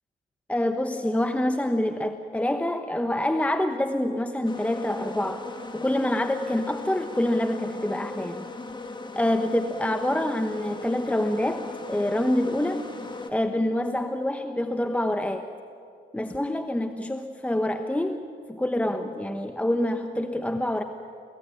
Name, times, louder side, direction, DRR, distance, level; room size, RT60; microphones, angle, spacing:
voice 1, 0.5-5.5 5.7-8.4 9.1-12.8 13.3-15.4 16.1-18.2 18.5-20.8, left 1 dB, 5° left, 7 dB, 1.1 m, -26 dB
sound 1, 4.4-13.3, left 3 dB, 25° left, 2.1 m, -38 dB
24.0 x 16.5 x 9.0 m, 2.5 s
cardioid pair, 90°, 20 cm